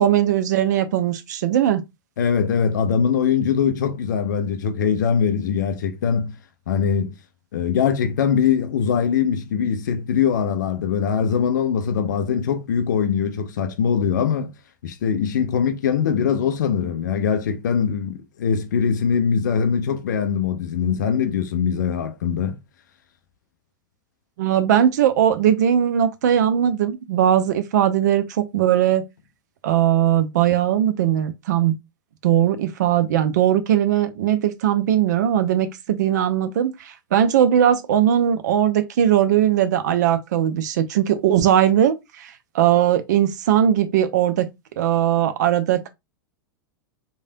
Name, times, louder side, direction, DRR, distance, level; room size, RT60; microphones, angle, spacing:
voice 1, 0.0-1.8 24.4-29.0 29.6-31.7 32.2-44.5 44.8-45.9, right 10 dB, 55° right, 0.5 m, -19 dB
voice 2, 2.2-6.3 6.7-7.2 7.5-14.5 14.8-22.6, left 7 dB, 55° left, 0.4 m, -22 dB
3.2 x 2.2 x 2.6 m
figure-of-eight pair, 95°, 11 cm